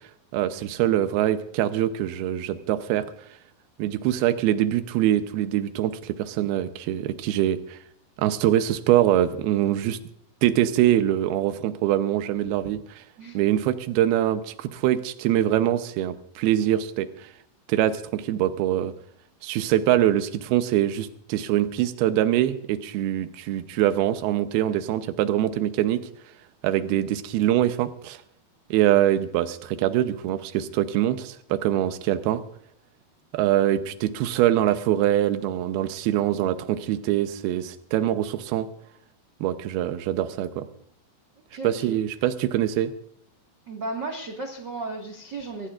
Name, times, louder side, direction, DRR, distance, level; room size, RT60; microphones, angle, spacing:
voice 1, 0.3-3.0 3.8-7.8 8.2-10.0 10.4-13.0 13.3-17.3 17.7-18.9 19.4-26.1 26.6-28.2 28.7-32.4 33.3-38.7 39.4-40.7 41.6-42.9, right 12 dB, 75° right, 10 dB, 2.7 m, -24 dB
voice 2, 41.5-42.0 43.7-45.7, right 2 dB, 50° right, 2 dB, 1.3 m, -34 dB
24.5 x 16.0 x 2.5 m, 0.67 s
omnidirectional pair, 4.8 m